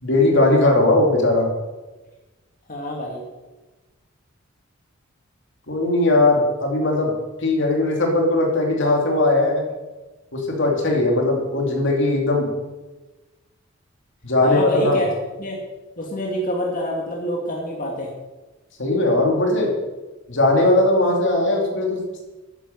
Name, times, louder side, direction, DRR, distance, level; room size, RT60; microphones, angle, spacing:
voice 1, 0.0-1.5 5.7-7.1 7.4-9.7 10.3-12.5 14.2-15.0 18.8-19.7 20.3-22.2, left 2 dB, 65° left, 1 dB, 2.6 m, -19 dB
voice 2, 2.7-3.2 14.4-15.1 15.4-15.6 16.0-18.1, equal, 40° left, -2 dB, 2.1 m, -26 dB
9.9 x 9.2 x 6.8 m, 1.2 s
head